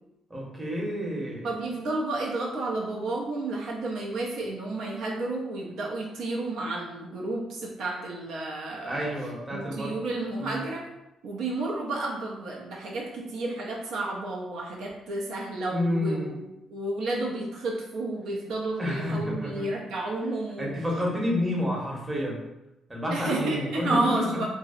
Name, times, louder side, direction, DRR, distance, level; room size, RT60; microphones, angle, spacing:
voice 1, 0.3-1.5 8.9-9.9 10.4-10.6 15.7-16.3 18.8-19.7 20.6-22.4 22.9-24.5, equal, 20° right, -3 dB, 0.8 m, -29 dB
voice 2, 1.4-9.1 9.5-10.8 11.2-20.7 23.1-24.5, right 2 dB, 80° right, -3 dB, 0.4 m, -31 dB
2.6 x 2.0 x 2.5 m, 0.92 s
cardioid pair, 90°, 0 cm